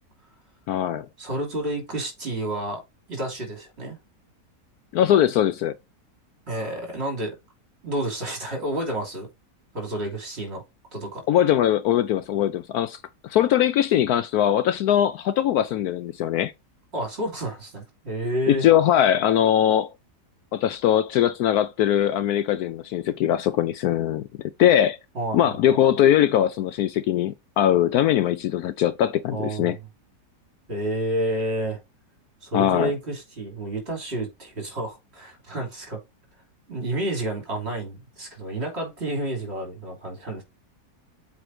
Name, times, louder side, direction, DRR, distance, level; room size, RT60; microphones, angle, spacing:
voice 1, 0.7-1.1 4.9-5.7 11.3-16.5 18.5-19.9 20.5-24.3 24.6-25.0 25.3-29.8 32.5-32.9, left 11 dB, 70° left, 1.0 m, -21 dB
voice 2, 1.2-2.8 3.1-4.0 6.5-7.3 7.8-9.3 9.7-10.6 10.9-11.2 16.9-18.6 25.1-25.8 29.3-29.8 30.7-31.8 32.4-36.0 36.7-40.4, right 1 dB, 40° right, 3.4 m, -30 dB
7.8 x 3.3 x 4.3 m
omnidirectional pair, 1.8 m